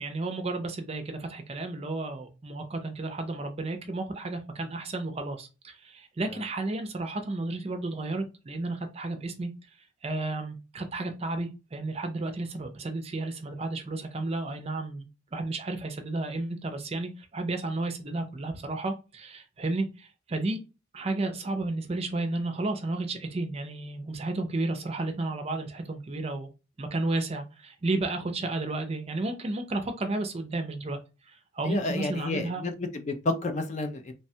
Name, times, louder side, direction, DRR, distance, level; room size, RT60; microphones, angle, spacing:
voice 1, 0.0-9.5 10.0-20.6 20.9-26.5 26.8-31.0 31.3-32.6, right 2 dB, 30° right, 6 dB, 0.4 m, -32 dB
voice 2, 31.7-34.1, left 2 dB, 35° left, 8 dB, 0.3 m, -30 dB
3.1 x 2.1 x 2.7 m, 0.30 s
head